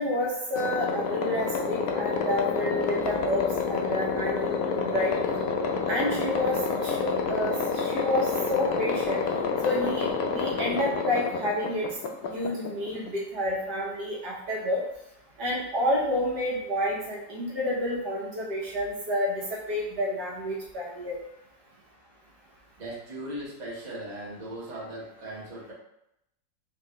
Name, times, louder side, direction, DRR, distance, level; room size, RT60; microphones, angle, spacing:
voice 1, 0.0-5.1 5.9-9.2 9.6-11.9 12.3-14.8 15.4-21.2, left 1 dB, 65° right, -4 dB, 1.5 m, -29 dB
sound 1, 0.6-13.2, left 5 dB, 70° left, 0.8 m, -28 dB
voice 2, 22.8-25.7, right 1 dB, 25° right, -6 dB, 1.2 m, -38 dB
4.6 x 3.0 x 3.0 m, 0.81 s
omnidirectional pair, 2.0 m